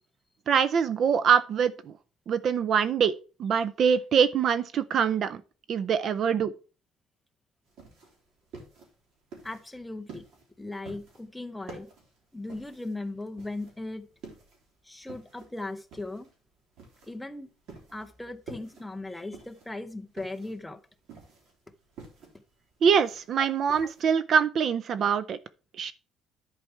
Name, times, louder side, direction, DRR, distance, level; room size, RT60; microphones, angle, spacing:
voice 1, 0.5-1.9 2.3-3.1 3.4-5.4 5.7-6.5 22.8-25.4 25.8-25.9, right 7 dB, 40° right, 0.4 m, -24 dB
sound 1, 7.7-24.1, right 3 dB, 60° right, 3.2 m, -49 dB
voice 2, 9.4-10.3 10.6-11.9 12.3-14.1 14.8-16.3 17.0-17.5 17.9-20.8 23.4-23.5 23.8-23.9, left 2 dB, 5° left, 0.6 m, -38 dB
10.5 x 4.7 x 4.4 m
cardioid pair, 170°, 0 cm